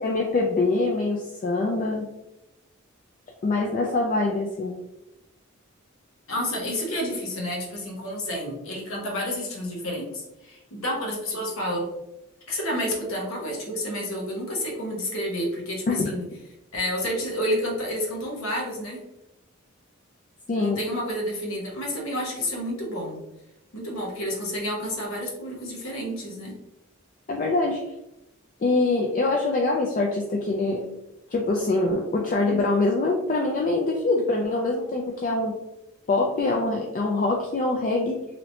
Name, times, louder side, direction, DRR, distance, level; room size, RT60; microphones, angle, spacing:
voice 1, 0.0-2.1 3.4-4.8 15.9-16.0 20.5-20.8 27.3-27.8 28.6-30.8 31.3-35.5 36.1-38.2, left 2 dB, 40° left, 0 dB, 0.3 m, -24 dB
voice 2, 6.3-11.9 12.5-16.2 16.7-19.0 20.6-23.2 23.7-26.5, equal, 80° left, -1 dB, 0.9 m, -30 dB
3.0 x 2.8 x 2.6 m, 0.91 s
head